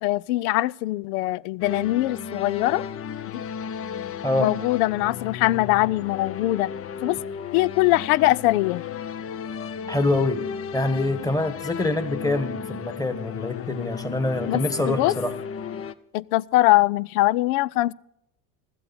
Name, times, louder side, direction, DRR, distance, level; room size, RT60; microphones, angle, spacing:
voice 1, 0.0-2.9 3.3-3.4 4.4-6.7 7.0-7.2 7.5-8.8 14.5-15.1 16.1-17.9, left 17 dB, 70° left, 0.6 m, -22 dB
sound 1, 1.6-15.9, left 7 dB, 30° left, 0.7 m, -34 dB
voice 2, 9.9-10.4 10.7-15.3, left 2 dB, 10° left, 1.6 m, -25 dB
16.0 x 13.0 x 4.2 m
hypercardioid pair, 85°, 47 cm